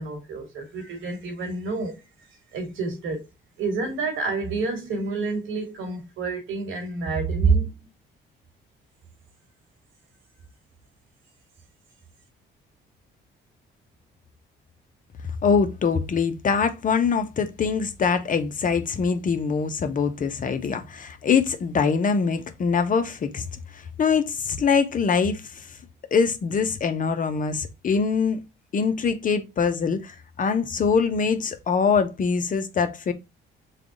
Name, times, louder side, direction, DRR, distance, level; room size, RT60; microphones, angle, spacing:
voice 1, 0.0-2.0 2.5-3.3 3.6-7.9, right 4 dB, 80° right, 1.5 m, -28 dB
voice 2, 15.4-23.5 23.7-25.8 26.1-28.4 28.7-33.1, left 5 dB, 40° left, 0.7 m, -23 dB
3.4 x 2.3 x 3.7 m
cardioid pair, 90°, 20 cm